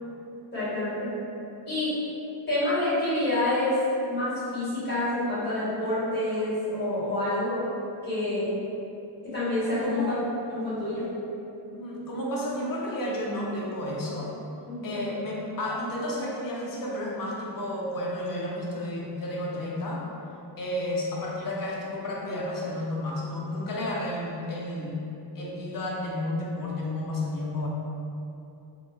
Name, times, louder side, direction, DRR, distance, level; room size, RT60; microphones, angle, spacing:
voice 1, 0.5-1.1 1.7-1.9 2.5-3.8 4.0-7.6 8.0-8.6 9.2-10.1 10.5-11.1 14.6-15.0 23.7-23.9, left 1 dB, 20° left, -14 dB, 1.4 m, -28 dB
voice 2, 9.8-10.2 11.7-14.3 14.8-20.0 20.6-25.0 25.3-27.7, left 1 dB, 45° left, -3 dB, 0.6 m, -32 dB
3.5 x 2.0 x 3.3 m, 2.8 s
wide cardioid pair, 175°, 46 cm